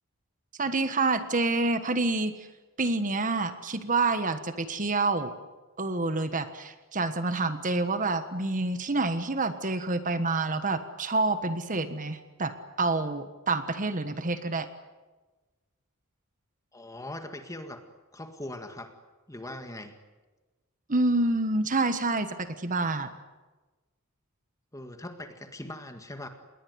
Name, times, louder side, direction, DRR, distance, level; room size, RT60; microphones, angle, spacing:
voice 1, 0.6-2.5 2.8-5.3 5.8-14.7 20.9-23.1, right 3 dB, 40° right, 10 dB, 1.4 m, -28 dB
voice 2, 16.7-17.8 18.1-18.9 19.3-20.0 24.7-26.3, left 1 dB, 15° left, 6 dB, 1.9 m, -40 dB
28.5 x 21.0 x 9.5 m, 1.2 s
head